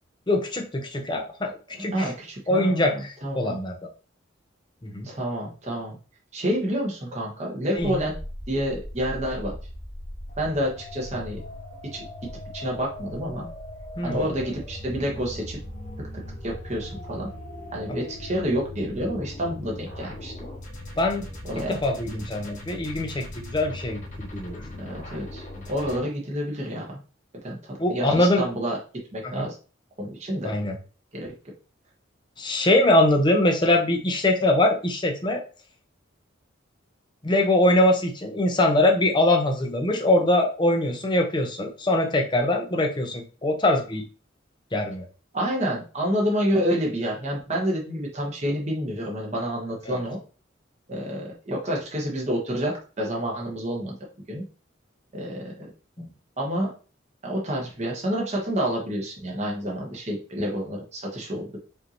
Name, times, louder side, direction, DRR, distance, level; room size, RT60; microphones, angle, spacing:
voice 1, 0.3-2.1 2.5-3.9 4.8-5.1 7.7-8.0 14.0-14.2 17.9-18.0 21.0-21.2 21.6-24.6 27.8-28.5 29.2-29.4 30.4-30.8 32.4-35.4 37.2-44.0 44.7-45.0 49.9-50.0 56.0-56.1, left 1 dB, 20° left, 3 dB, 0.6 m, -23 dB
voice 2, 1.7-3.6 5.0-6.0 6.3-8.1 8.5-9.5 10.4-11.4 11.8-12.1 12.5-13.5 14.0-15.6 16.4-17.3 17.7-20.3 21.4-21.8 24.8-27.0 27.4-28.8 29.1-29.5 30.0-30.5 31.1-31.3 45.3-50.2 50.9-53.9 54.3-54.4 55.1-55.7 56.4-56.7 57.2-61.6, equal, 35° right, -2 dB, 1.1 m, -28 dB
sound 1, 7.8-26.0, left 1 dB, 35° left, 1.0 m, -39 dB
5.1 x 2.7 x 2.9 m, 0.36 s
head